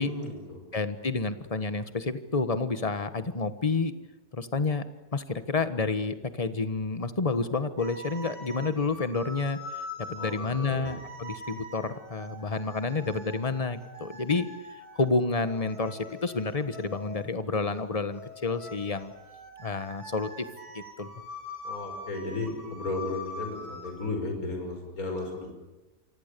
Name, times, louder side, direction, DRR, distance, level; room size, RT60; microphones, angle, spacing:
voice 1, 0.0-0.6 10.2-10.9 21.6-25.6, left 2 dB, 60° left, 3 dB, 5.9 m, -34 dB
voice 2, 0.7-3.9 4.3-4.8 5.1-9.6 10.1-14.5 14.9-19.1 19.6-20.4 20.7-21.1, left 3 dB, 25° left, 11 dB, 1.4 m, -29 dB
sound 1, 7.8-17.4 18.1-23.9, left 2 dB, 70° right, 8.7 m, -43 dB
28.5 x 24.5 x 6.9 m, 1.0 s
omnidirectional pair, 1.7 m